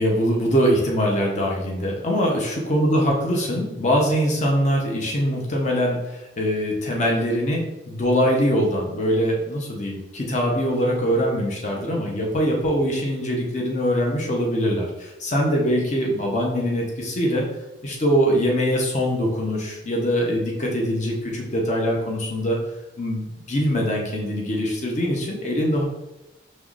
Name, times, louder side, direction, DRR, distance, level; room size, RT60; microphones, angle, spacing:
voice 1, 0.0-17.5 17.8-22.6 23.0-25.8, equal, 40° left, -1 dB, 0.8 m, -23 dB
5.5 x 3.1 x 2.5 m, 0.96 s
head